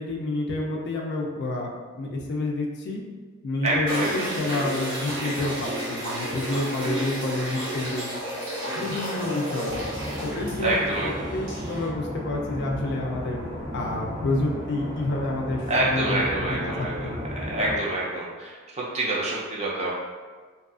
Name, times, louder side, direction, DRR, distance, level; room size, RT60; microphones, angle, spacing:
voice 1, 0.0-3.1 3.4-8.1 8.7-9.8 10.2-13.4 13.7-17.2, left 2 dB, 55° left, 0 dB, 0.4 m, -29 dB
voice 2, 3.6-4.3 8.6-9.2 10.6-11.3 15.7-17.1 17.5-19.9, right 1 dB, 30° right, -5 dB, 0.6 m, -27 dB
sound 1, 3.9-11.9, right 1 dB, 70° right, 1.1 m, -32 dB
sound 2, 9.7-17.8, equal, 90° right, 1.1 m, -34 dB
2.6 x 2.3 x 2.4 m, 1.4 s
head